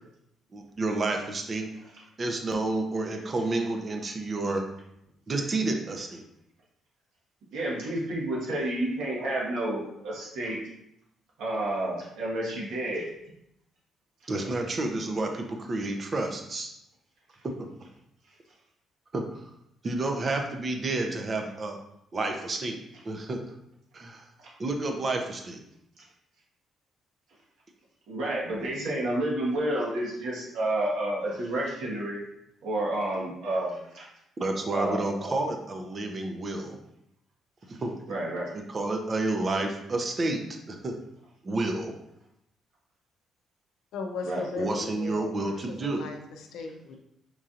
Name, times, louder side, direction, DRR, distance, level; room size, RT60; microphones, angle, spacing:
voice 1, 0.5-1.7 2.2-4.6 5.3-6.2 14.3-16.7 19.1-19.4 19.8-21.8 22.1-22.8 23.0-23.5 23.9-24.3 24.6-25.6 34.4-36.8 37.7-37.9 38.5-40.4 40.7-40.9 41.4-41.9 44.6-46.0, right 2 dB, 40° right, 4 dB, 0.6 m, -30 dB
voice 2, 7.5-10.6 11.4-13.1 28.1-32.2 32.6-34.0 34.7-35.3 38.1-38.5 44.2-44.7, right 1 dB, 80° right, -5 dB, 1.4 m, -30 dB
voice 3, 43.9-47.0, left 4 dB, 85° left, 4 dB, 0.5 m, -37 dB
4.5 x 2.7 x 2.5 m, 0.79 s
cardioid pair, 90°, 0 cm